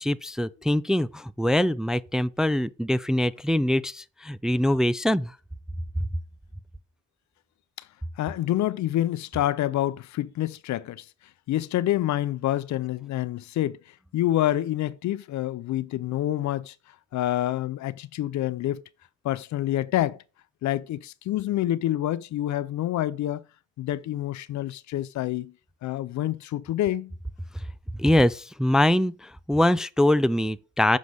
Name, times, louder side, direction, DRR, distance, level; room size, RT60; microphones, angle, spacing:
voice 1, 0.0-5.3 28.0-31.0, left 1 dB, ahead, 0.4 m, -23 dB
voice 2, 8.2-11.1 11.5-13.8 14.1-16.7 17.1-18.8 19.2-20.2 20.6-23.4 23.8-25.5 25.8-27.1, left 13 dB, 70° left, 0.6 m, -27 dB
9.3 x 6.4 x 3.5 m
cardioid pair, 90°, 30 cm